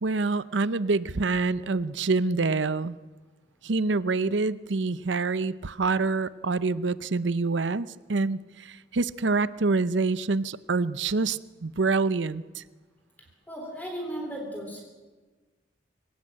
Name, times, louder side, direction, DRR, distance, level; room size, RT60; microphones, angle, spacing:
voice 1, 0.0-3.0 3.6-12.6, right 3 dB, 80° right, 16 dB, 0.7 m, -26 dB
voice 2, 13.5-14.9, right 1 dB, 10° left, 0 dB, 3.5 m, -35 dB
25.5 x 17.0 x 8.7 m, 1.3 s
head